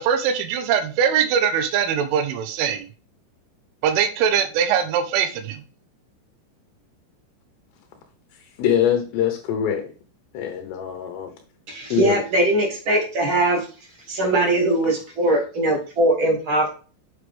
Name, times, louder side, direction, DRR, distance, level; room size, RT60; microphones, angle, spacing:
voice 1, 0.0-2.9 3.8-5.6, right 8 dB, 90° right, 9 dB, 3.4 m, -22 dB
voice 2, 8.6-9.9 10.3-11.3 11.9-12.2, left 9 dB, 75° left, 5 dB, 2.9 m, -23 dB
voice 3, 11.7-13.6 14.1-16.7, right 1 dB, 35° right, 0 dB, 2.2 m, -21 dB
7.7 x 6.6 x 3.5 m, 0.37 s
omnidirectional pair, 5.4 m